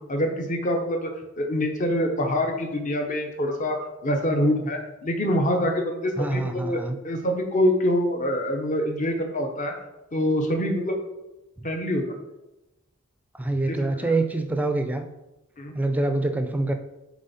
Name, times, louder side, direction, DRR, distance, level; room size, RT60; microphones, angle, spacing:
voice 1, 0.1-1.1 1.4-3.8 4.0-6.8 7.0-9.7 10.1-11.0 11.6-12.1 13.7-13.8 14.0-14.1 15.6-15.7, left 1 dB, 35° left, 3 dB, 0.8 m, -25 dB
voice 2, 6.2-7.0 11.6-11.7 13.3-15.1 15.7-16.7, right 2 dB, 5° right, 7 dB, 0.4 m, -25 dB
7.3 x 3.6 x 4.1 m, 0.97 s
head